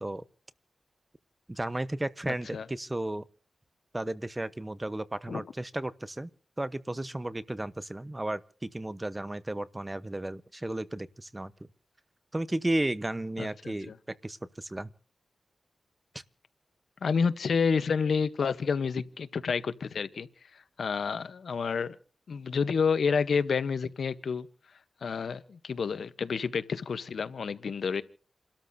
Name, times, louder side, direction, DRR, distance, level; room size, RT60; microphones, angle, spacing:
voice 1, 1.5-3.2 3.9-6.3 6.6-11.5 12.3-13.9 14.2-14.9, right 1 dB, 25° right, 0.9 m, -34 dB
voice 2, 2.3-2.7 5.3-5.4 13.4-13.9 17.0-20.3 20.8-22.0 22.3-24.5 25.0-28.0, left 5 dB, 85° left, 0.9 m, -29 dB
29.0 x 13.0 x 2.7 m
cardioid pair, 55°, 0 cm